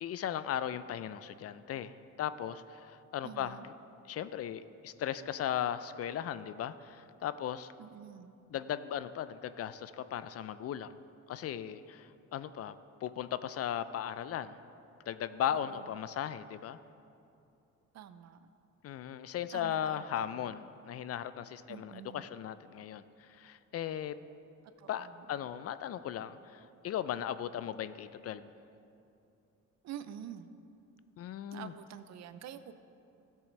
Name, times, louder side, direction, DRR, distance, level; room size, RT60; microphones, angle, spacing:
voice 1, 0.0-1.9 2.2-3.7 4.1-7.7 8.5-10.9 11.3-12.7 13.0-14.6 15.1-16.8 18.8-24.2 24.9-28.5 31.2-31.7, left 10 dB, 55° left, 14 dB, 0.4 m, -37 dB
voice 2, 3.2-3.7 7.8-8.3 15.5-15.8 17.9-18.5 19.5-20.5 21.7-22.4 24.8-25.3 29.8-30.5 31.5-32.7, right 9 dB, 60° right, 11 dB, 0.6 m, -47 dB
13.0 x 7.5 x 3.2 m, 2.7 s
cardioid pair, 90°, 30 cm